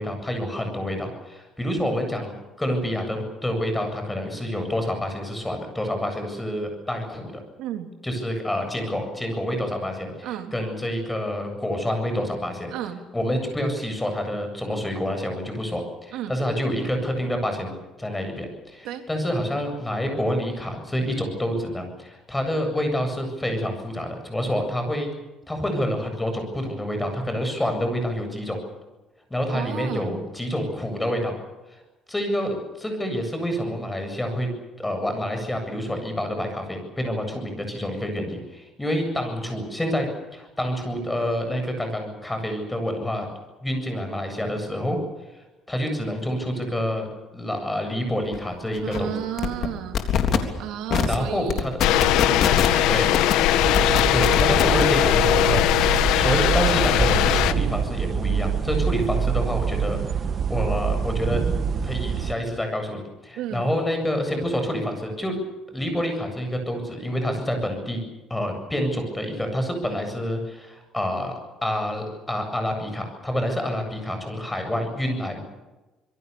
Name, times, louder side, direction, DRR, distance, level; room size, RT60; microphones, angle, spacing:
voice 1, 0.0-7.3 8.0-12.7 13.1-25.1 25.5-28.6 29.3-31.3 31.7-31.8 32.1-34.5 34.8-43.3 43.6-45.0 45.7-47.1 47.3-49.1 51.0-51.7 52.9-53.1 54.1-61.4 61.8-65.4 65.7-68.0 68.3-71.3 71.6-75.4, equal, 10° left, 5 dB, 7.8 m, -28 dB
voice 2, 7.6-7.9 10.2-10.5 12.7-13.0 16.1-16.3 18.8-19.0 29.5-30.2 48.8-50.0 50.6-53.0 63.3-63.7, right 11 dB, 80° right, 5 dB, 3.2 m, -33 dB
sound 1, 48.3-48.4 48.7-49.0 49.4-49.7 49.9-50.4 50.9-51.2 51.5-52.8 53.1-53.3 53.7-54.8, left 8 dB, 55° left, 3.5 m, -23 dB
sound 2, 51.8-57.5, left 12 dB, 85° left, 1.4 m, -20 dB
sound 3, 53.6-62.3, right 7 dB, 40° right, 1.5 m, -26 dB
26.5 x 22.5 x 7.1 m, 1.1 s
cardioid pair, 125°, 0 cm